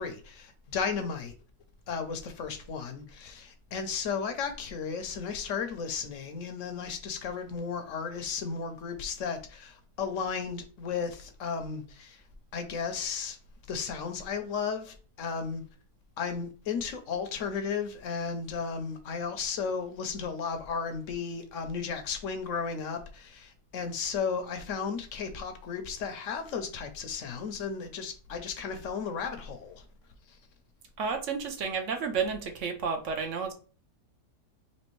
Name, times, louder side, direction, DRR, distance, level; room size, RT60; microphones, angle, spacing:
voice 1, 0.0-1.3 1.9-12.2 12.5-13.4 13.7-15.6 16.2-29.8 30.3-30.4, left 6 dB, 65° left, 0.8 m, -34 dB
voice 2, 31.0-33.5, right 5 dB, 60° right, 0.8 m, -31 dB
4.2 x 3.0 x 3.1 m
omnidirectional pair, 1.8 m